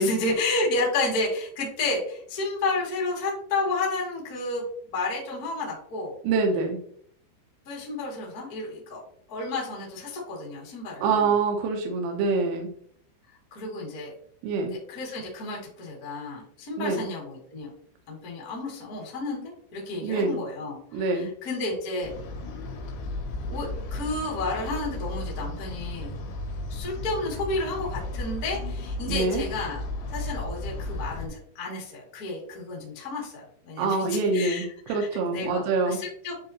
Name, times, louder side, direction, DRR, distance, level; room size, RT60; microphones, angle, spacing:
voice 1, 0.0-4.6 4.9-6.1 7.6-9.0 9.3-11.3 13.5-14.1 14.6-17.7 18.1-22.1 23.5-26.1 26.7-29.8 30.1-36.3, left 2 dB, 60° left, -4 dB, 0.9 m, -31 dB
voice 2, 6.2-6.8 11.0-12.7 14.4-14.7 16.8-17.0 20.0-20.4 20.9-21.3 29.1-29.4 33.8-36.0, right 3 dB, 90° right, 2 dB, 3.5 m, -25 dB
sound 1, 22.0-31.3, left 2 dB, 80° left, 4.0 m, -34 dB
10.0 x 3.9 x 2.8 m, 0.64 s
omnidirectional pair, 5.8 m